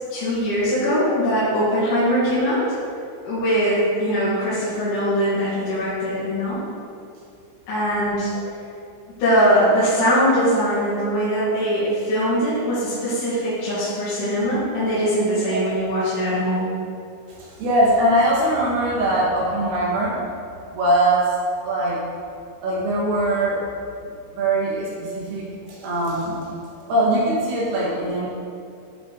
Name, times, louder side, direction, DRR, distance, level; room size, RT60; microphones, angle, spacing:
voice 1, 0.1-2.7 3.2-6.6 7.7-8.3 9.2-16.8, equal, 60° left, -12 dB, 2.9 m, -21 dB
voice 2, 17.3-20.2 20.7-21.3 21.6-22.0 22.6-23.6 24.3-26.4 26.7-28.3, right 1 dB, 90° right, -5 dB, 3.6 m, -21 dB
10.5 x 4.3 x 3.8 m, 2.4 s
omnidirectional pair, 4.5 m